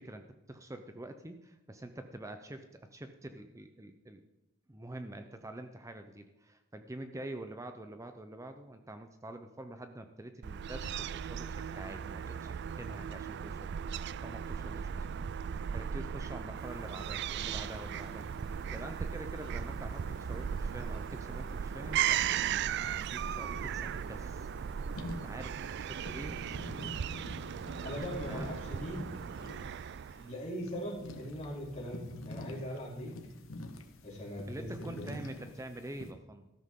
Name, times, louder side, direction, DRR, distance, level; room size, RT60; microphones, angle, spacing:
voice 1, 0.0-4.2 4.7-22.5 22.8-24.5 25.1-26.9 28.3-28.4 32.7-33.2 34.5-36.5, right 1 dB, 15° right, 7 dB, 0.6 m, -46 dB
Fowl / Gull seagull, 10.4-30.3, right 8 dB, 55° right, 0.4 m, -37 dB
sound 1, 16.6-36.1, left 1 dB, 70° left, 1.5 m, -49 dB
voice 2, 27.8-29.1 30.2-33.2 34.0-35.1, equal, 35° left, -4 dB, 4.3 m, -40 dB
13.5 x 13.5 x 3.7 m, 1.0 s
head